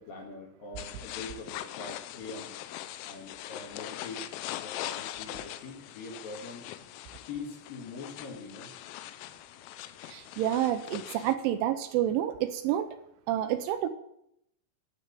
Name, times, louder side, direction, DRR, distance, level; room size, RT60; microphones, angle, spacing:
voice 1, 0.0-2.5 3.0-4.3 4.6-6.6 7.3-8.7, left 3 dB, 55° left, 1 dB, 3.0 m, -43 dB
sound 1, 0.8-11.4, left 13 dB, 90° left, 3.4 m, -41 dB
voice 2, 10.1-12.9 13.3-13.9, right 12 dB, 80° right, 9 dB, 3.0 m, -29 dB
12.0 x 8.1 x 9.2 m, 0.76 s
omnidirectional pair, 5.9 m